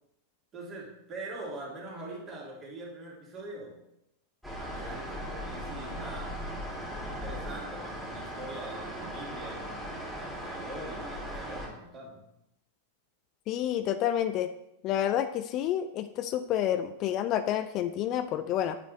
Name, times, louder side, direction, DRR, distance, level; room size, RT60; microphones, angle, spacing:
voice 1, 0.5-3.8 4.6-6.5 6.9-9.7 10.1-12.3, right 2 dB, 30° right, -3 dB, 2.4 m, -43 dB
sound 1, 4.4-11.7, equal, 5° right, 2.2 m, -38 dB
voice 2, 13.5-14.5 14.8-18.8, left 11 dB, 35° left, 10 dB, 0.4 m, -29 dB
9.0 x 4.8 x 3.9 m, 0.84 s
figure-of-eight pair, 90°, 0 cm